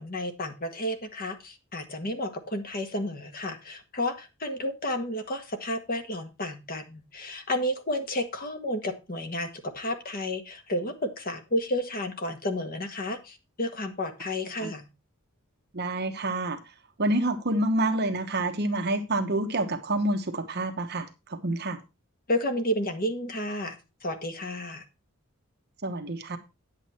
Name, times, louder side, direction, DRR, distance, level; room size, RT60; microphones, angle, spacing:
voice 1, 0.0-14.9 22.3-24.8, left 1 dB, 45° left, 1.6 m, -31 dB
voice 2, 15.7-16.6 17.0-21.8 25.8-26.4, right 1 dB, 50° right, 1.1 m, -28 dB
9.3 x 8.2 x 4.3 m
head